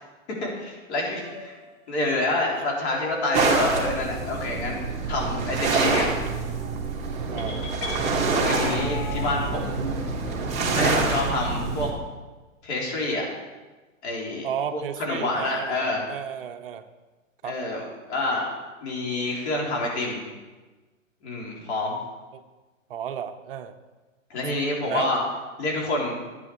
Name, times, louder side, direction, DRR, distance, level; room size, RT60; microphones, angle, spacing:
voice 1, 0.4-1.5 1.9-4.8 5.1-6.1 8.3-9.8 10.7-11.9 12.6-13.3 14.0-14.4 14.7-16.0 17.4-18.4 18.8-20.2 21.2-22.0 24.3-25.2 25.6-26.1, left 2 dB, 55° left, -2 dB, 3.9 m, -27 dB
sound 1, 1.2-5.5 6.2-7.5, equal, ahead, 1.7 m, -42 dB
sound 2, 3.3-11.9, right 4 dB, 15° right, 2.2 m, -26 dB
sound 3, 7.4-9.4, left 4 dB, 25° left, 1.2 m, -35 dB
voice 2, 8.6-8.9 12.9-13.1 14.4-16.9 17.4-17.6 22.3-22.4 22.9-23.8 24.9-25.1, right 9 dB, 45° right, 8 dB, 0.8 m, -33 dB
11.0 x 10.0 x 4.7 m, 1.2 s
hypercardioid pair, 145°, 39 cm